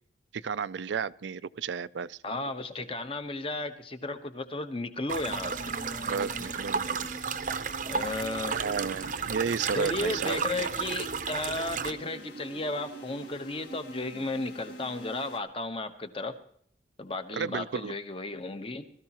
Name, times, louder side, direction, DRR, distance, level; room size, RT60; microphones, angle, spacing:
voice 1, 0.3-2.2 6.1-7.0 8.5-10.4 17.3-17.9, right 6 dB, 80° right, 0.4 m, -32 dB
voice 2, 2.2-5.8 7.9-8.6 9.7-16.3 17.0-18.8, left 2 dB, 30° left, 1.1 m, -34 dB
sound 1, 5.1-11.9, right 5 dB, 45° right, 0.7 m, -33 dB
sound 2, 5.2-15.4, right 1 dB, 80° left, 1.9 m, -44 dB
21.0 x 13.5 x 3.0 m
head